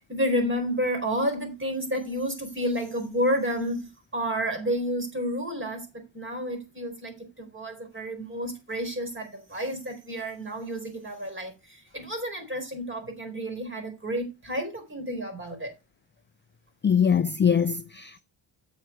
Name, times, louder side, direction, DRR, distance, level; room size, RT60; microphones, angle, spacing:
voice 1, 0.1-15.7, equal, 25° right, 4.1 m, -30 dB
voice 2, 16.8-18.2, left 7 dB, 25° left, 0.4 m, -22 dB
8.2 x 7.9 x 4.4 m
cardioid pair, 115°, 47 cm